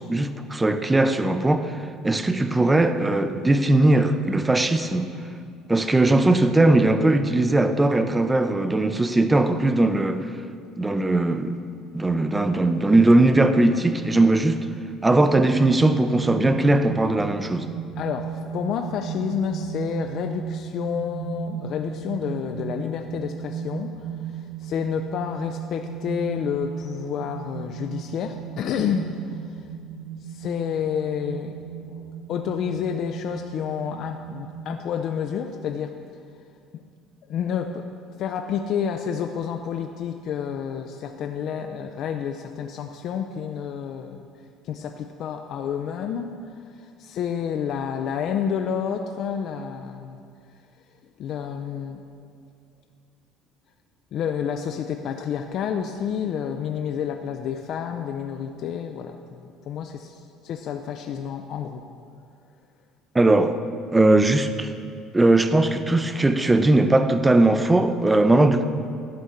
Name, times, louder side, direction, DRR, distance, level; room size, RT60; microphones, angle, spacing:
voice 1, 0.0-1.8 2.0-5.1 5.7-10.3 10.8-11.6 11.9-14.6 15.0-17.7 63.1-63.6 63.9-64.7 65.1-68.6, right 2 dB, 15° right, 0.5 m, -19 dB
sound 1, 15.5-34.9, right 8 dB, 85° right, 0.4 m, -36 dB
voice 2, 18.0-29.7 30.2-31.6 31.9-36.0 36.7-36.8 37.3-37.8 38.2-44.2 44.6-50.2 51.2-52.0 54.1-61.9, left 8 dB, 60° left, 0.4 m, -29 dB
11.5 x 4.3 x 6.4 m
supercardioid pair, 95°, 0 cm